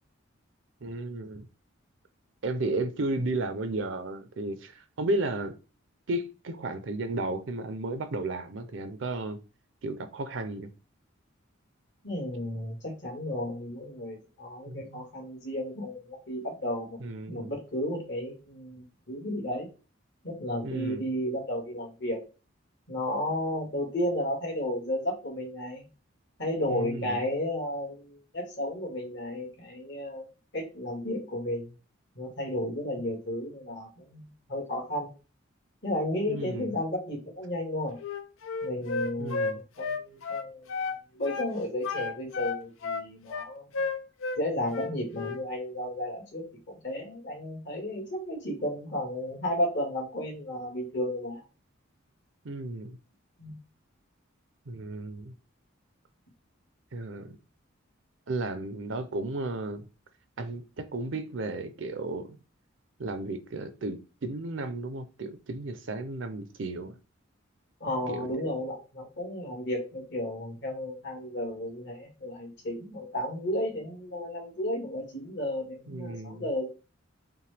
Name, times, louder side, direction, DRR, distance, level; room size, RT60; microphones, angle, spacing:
voice 1, 0.8-1.5 2.4-5.5 6.1-9.4 9.8-10.7 14.7-15.0 17.0-17.5 20.6-21.1 26.6-27.2 36.3-36.7 39.2-39.6 52.4-53.0 54.7-55.3 56.9-57.4 58.3-59.9 60.4-62.4 63.0-66.9 68.1-68.3 75.9-76.5, right 2 dB, 65° right, 0.6 m, -34 dB
voice 2, 12.0-17.0 17.3-19.7 20.2-22.2 22.9-25.9 26.4-30.3 30.5-31.7 32.2-35.1 35.8-38.0 38.6-40.7 41.1-43.6 44.4-51.4 53.4-53.6 67.8-76.7, left 1 dB, 60° left, 1.7 m, -33 dB
Wind instrument woodwind instrument, 38.0-41.0 41.2-41.5 41.8-44.4 44.7-45.4, left 4 dB, 85° left, 0.5 m, -32 dB
5.5 x 2.2 x 3.3 m
head